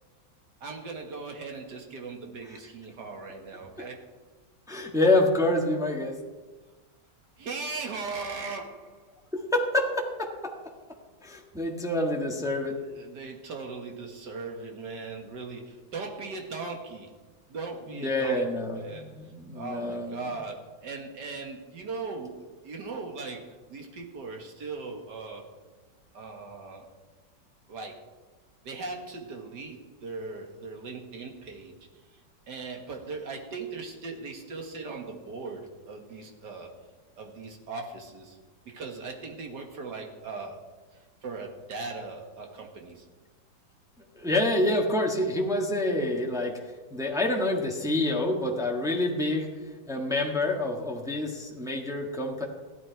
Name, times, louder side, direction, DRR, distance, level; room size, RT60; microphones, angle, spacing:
voice 1, 0.6-4.0 7.4-9.1 12.6-17.1 17.5-25.5 26.1-26.9 27.7-28.1 28.6-31.7 32.1-32.2 32.5-36.7 37.2-38.4 38.7-40.6 41.2-43.1, right 4 dB, 60° right, 2 dB, 2.2 m, -39 dB
voice 2, 4.7-6.2 9.3-10.5 11.2-12.8 18.0-20.2 44.1-46.6 46.9-49.5 49.9-52.4, left 1 dB, ahead, 0 dB, 1.3 m, -27 dB
15.0 x 12.0 x 4.6 m, 1.3 s
omnidirectional pair, 2.1 m